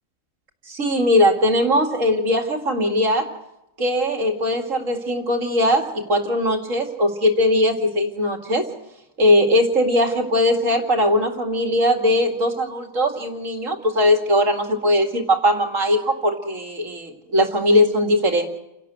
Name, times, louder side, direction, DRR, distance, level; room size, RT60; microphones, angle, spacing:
voice 1, 0.7-3.3 3.8-8.7 9.2-18.5, left 1 dB, 75° right, 3 dB, 2.7 m, -20 dB
29.0 x 12.0 x 8.0 m, 0.89 s
omnidirectional pair, 1.3 m